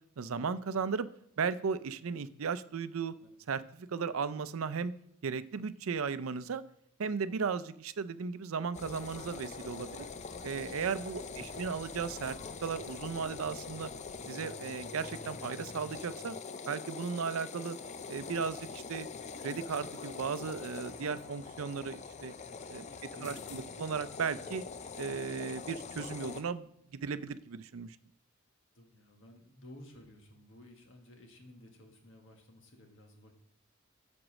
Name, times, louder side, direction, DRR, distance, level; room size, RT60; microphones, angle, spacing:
voice 1, 0.2-1.1 1.4-3.1 3.5-4.9 5.2-6.6 7.0-10.1 10.4-13.9 14.3-16.4 16.7-17.8 18.1-19.1 19.4-22.3 22.7-24.6 25.0-28.0, right 5 dB, 75° right, 14 dB, 0.5 m, -36 dB
sound 1, 8.7-26.4, left 5 dB, 30° left, 0.4 m, -44 dB
voice 2, 11.3-11.6 23.0-23.8 28.7-33.3, left 1 dB, 60° left, 3 dB, 1.6 m, -54 dB
7.8 x 5.3 x 6.2 m, 0.70 s
head